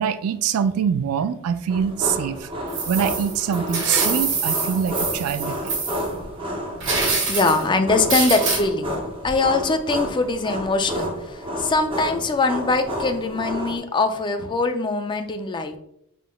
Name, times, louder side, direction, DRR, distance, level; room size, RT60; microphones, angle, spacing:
voice 1, 0.0-2.5 2.9-5.8, right 8 dB, 75° right, 12 dB, 0.3 m, -24 dB
sound 1, 1.7-13.8, equal, 25° right, 0.6 m, -30 dB
sound 2, 2.7-6.1 6.8-7.6 8.1-8.6, right 4 dB, 60° right, 1.2 m, -25 dB
voice 2, 6.9-8.9 9.2-15.7, left 3 dB, 20° left, 7 dB, 0.3 m, -22 dB
4.8 x 3.6 x 2.2 m, 0.74 s
head